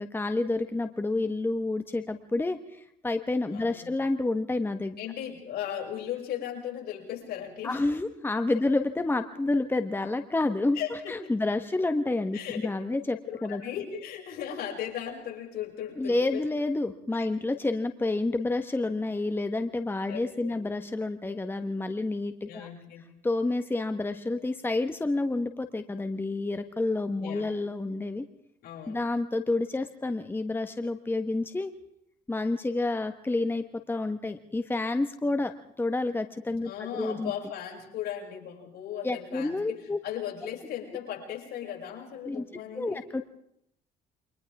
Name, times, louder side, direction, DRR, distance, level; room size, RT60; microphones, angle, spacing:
voice 1, 0.0-5.0 7.6-13.6 16.0-22.7 23.2-28.2 28.9-31.7 32.3-35.5 35.8-37.3 39.0-40.0 42.2-42.4 42.7-43.2, left 2 dB, 15° left, 8 dB, 1.3 m, -29 dB
voice 2, 3.5-3.9 5.0-7.8 10.7-11.3 12.3-12.7 13.3-16.4 17.3-17.4 20.1-20.6 22.5-23.1 27.2-27.5 28.6-29.1 36.6-39.8 40.0-43.0, left 10 dB, 70° left, -1 dB, 7.0 m, -37 dB
29.5 x 25.0 x 3.6 m, 0.74 s
cardioid pair, 110°, 17 cm